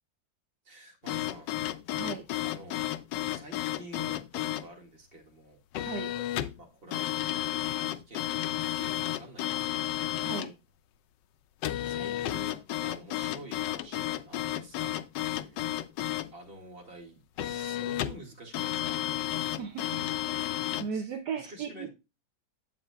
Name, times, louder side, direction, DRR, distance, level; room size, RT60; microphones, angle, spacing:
voice 1, 0.6-1.5 1.9-2.9 3.2-5.6 6.6-10.3 11.8-14.9 15.2-15.7 16.3-19.0 20.9-21.9, right 2 dB, 30° right, 0 dB, 2.1 m, -49 dB
sound 1, 1.1-4.7 5.7-6.6 6.9-10.5 11.6-16.3 17.4-18.2 18.5-20.9, left 13 dB, 75° left, 1.2 m, -32 dB
voice 2, 5.8-6.1 10.1-10.5 19.6-20.0 20.3-20.5 20.8-21.9, right 6 dB, 70° right, 5 dB, 1.3 m, -37 dB
8.0 x 7.5 x 2.2 m, 0.27 s
omnidirectional pair, 2.0 m